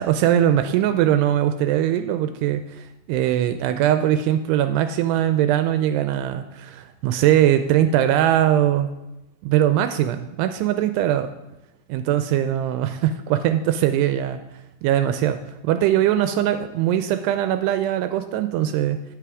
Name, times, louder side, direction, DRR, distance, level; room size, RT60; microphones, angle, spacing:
voice 1, 0.0-9.0 9.4-11.3 11.9-14.4 14.8-19.0, right 11 dB, 85° right, 9 dB, 2.5 m, -21 dB
10.0 x 8.1 x 4.8 m, 0.96 s
omnidirectional pair, 4.9 m